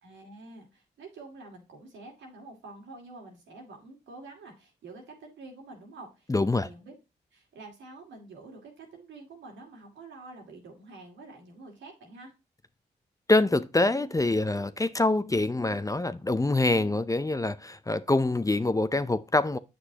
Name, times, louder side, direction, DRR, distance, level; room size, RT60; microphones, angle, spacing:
voice 1, 0.0-6.9 7.3-12.3, right 3 dB, 80° right, 2.4 m, -47 dB
voice 2, 6.3-6.7 13.3-19.6, left 2 dB, 20° left, 0.6 m, -25 dB
7.9 x 6.2 x 2.8 m
supercardioid pair, 45°, 19 cm